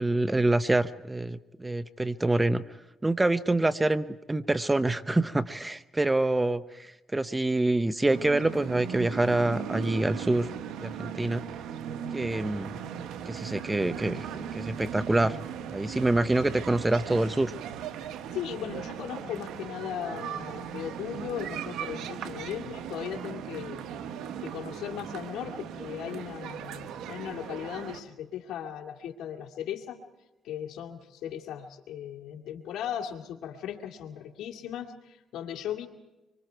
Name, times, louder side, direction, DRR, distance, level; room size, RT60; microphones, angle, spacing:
voice 1, 0.0-2.6 3.0-10.5 10.8-11.4 12.1-12.7 13.3-15.4 15.7-17.5, right 2 dB, 15° right, 13 dB, 0.8 m, -26 dB
sound 1, 8.1-28.0, right 8 dB, 85° right, 1.3 m, -38 dB
voice 2, 18.3-23.8 24.4-30.0 30.4-35.9, left 10 dB, 80° left, 4 dB, 2.3 m, -37 dB
26.0 x 24.5 x 4.6 m, 1.0 s
cardioid pair, 90°, 0 cm